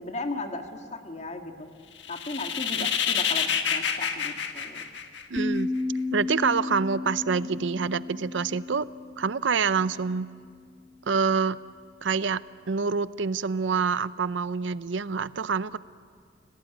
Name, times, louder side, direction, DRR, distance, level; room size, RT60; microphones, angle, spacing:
voice 1, 0.0-1.7 2.1-4.9, left 2 dB, 35° left, 5 dB, 1.9 m, -36 dB
sound 1, 2.0-5.6, left 7 dB, 70° left, 1.6 m, -28 dB
voice 2, 5.3-5.7 6.1-8.9 9.2-10.3 11.1-11.6 12.0-12.4 12.7-15.8, right 5 dB, 75° right, 16 dB, 0.6 m, -26 dB
sound 2, 5.4-10.5, left 2 dB, 5° left, 1.4 m, -33 dB
30.0 x 18.0 x 9.2 m, 2.1 s
head